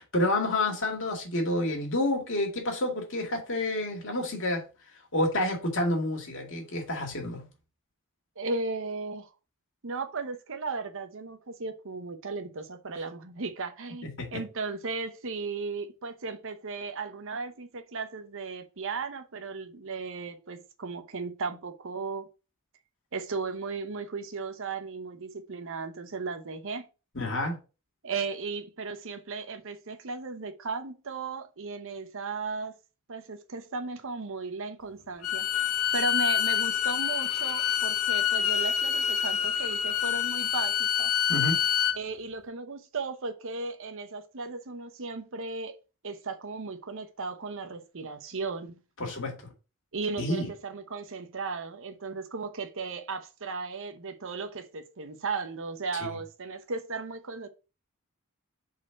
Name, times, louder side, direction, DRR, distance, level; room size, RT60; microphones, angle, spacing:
voice 1, 0.0-4.6 5.1-7.4 14.0-14.4 27.1-27.6 41.3-41.6 49.0-49.3 50.2-50.5, left 1 dB, 60° left, 2.2 m, -29 dB
voice 2, 8.4-9.3 9.8-22.3 23.1-26.9 28.0-32.8 33.1-35.5 35.9-41.1 41.9-45.8 46.0-48.8 49.9-57.5, right 4 dB, 60° right, 0.9 m, -36 dB
Bowed string instrument, 35.2-42.0, left 9 dB, 75° left, 0.8 m, -27 dB
5.0 x 4.3 x 5.8 m
head